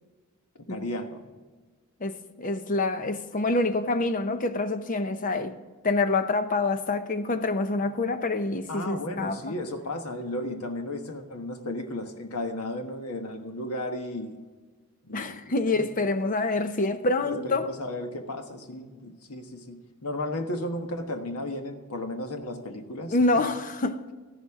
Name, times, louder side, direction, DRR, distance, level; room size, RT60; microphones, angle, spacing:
voice 1, 0.6-1.2 8.7-14.4 15.0-15.9 17.2-23.2, left 1 dB, 85° left, 1.3 m, -34 dB
voice 2, 2.0-5.6 5.8-9.5 15.1-17.7 23.1-24.1, left 2 dB, 35° left, 0.7 m, -26 dB
13.5 x 11.5 x 3.6 m
head